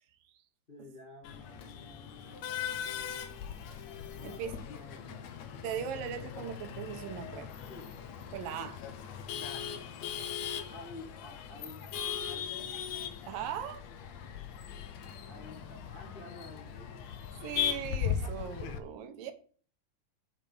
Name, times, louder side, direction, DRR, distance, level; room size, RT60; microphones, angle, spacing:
voice 1, 0.7-3.1 4.1-5.3 7.7-7.9 10.5-11.8 12.2-12.7 15.3-17.0 17.3-17.7, left 2 dB, 40° left, 0.7 m, -51 dB
Male speech man speaking / Laughter / Chatter, 1.2-18.8, left 9 dB, 70° left, 1.8 m, -39 dB
voice 2, 4.2-4.6 5.6-7.5 8.3-8.8 13.2-13.9 17.4-19.3, right 8 dB, 80° right, 2.7 m, -39 dB
8.6 x 6.9 x 4.6 m
omnidirectional pair, 3.9 m